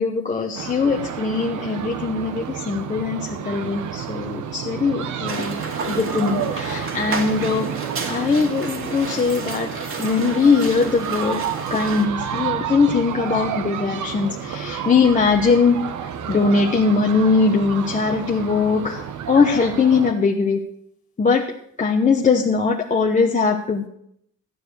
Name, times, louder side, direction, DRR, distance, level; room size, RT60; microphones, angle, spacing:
voice 1, 0.0-7.7 8.1-9.7 10.0-11.4 11.7-15.8 16.3-20.6 21.2-21.5 21.8-23.9, left 4 dB, 25° left, 1 dB, 1.0 m, -20 dB
sound 1, 0.5-20.1, right 8 dB, 70° right, 1.0 m, -30 dB
sound 2, 5.3-12.0, right 3 dB, 45° right, 2.3 m, -32 dB
13.5 x 9.4 x 6.3 m, 0.68 s
cardioid pair, 170°, 31 cm